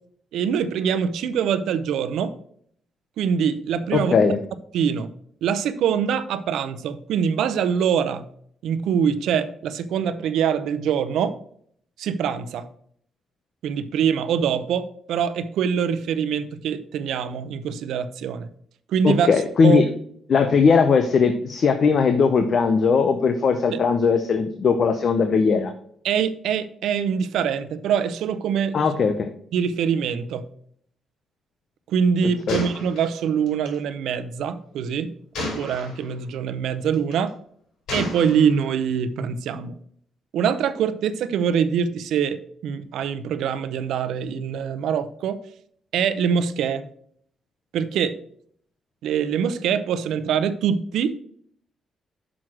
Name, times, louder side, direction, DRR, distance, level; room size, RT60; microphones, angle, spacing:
voice 1, 0.3-2.3 3.2-4.1 4.7-5.1 5.4-8.3 8.6-11.4 12.0-12.7 13.6-18.5 18.9-19.3 19.6-19.8 23.7-23.8 26.0-28.9 29.5-30.5 31.9-35.1 35.4-37.3 37.9-39.7 40.3-45.4 45.9-46.8 47.7-48.2 49.0-51.2, right 7 dB, 90° right, 12 dB, 0.6 m, -24 dB
voice 2, 3.9-4.4 19.0-19.9 20.3-25.7 28.7-29.3 32.5-32.6, left 5 dB, 50° left, 7 dB, 0.7 m, -19 dB
Gunshot gunfire, 32.5-33.8 35.3-36.1 36.9-37.3 37.9-38.7, left 2 dB, 75° left, 4.1 m, -32 dB
6.3 x 6.2 x 6.1 m, 0.64 s
cardioid pair, 125°, 0 cm